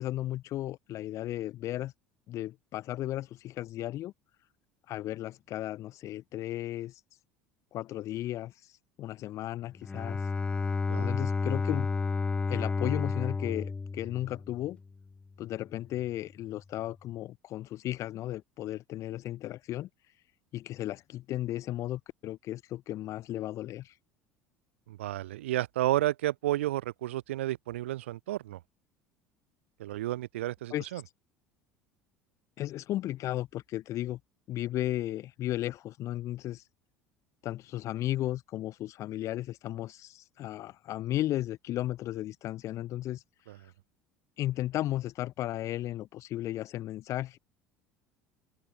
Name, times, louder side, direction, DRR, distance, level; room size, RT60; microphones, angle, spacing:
voice 1, 0.0-1.9 2.3-4.1 4.9-7.0 7.7-8.7 9.0-10.2 11.0-11.9 12.5-14.8 15.4-19.9 20.5-23.9 30.7-30.9 32.6-34.2 34.5-36.6 37.4-43.2 44.4-47.4, left 14 dB, 50° left, 1.4 m, -35 dB
Bowed string instrument, 9.8-14.7, left 4 dB, 15° left, 0.3 m, -31 dB
voice 2, 24.9-28.6 29.8-31.0 43.5-43.6, right 15 dB, 70° right, 0.3 m, -31 dB
open air
figure-of-eight pair, 65°, 7 cm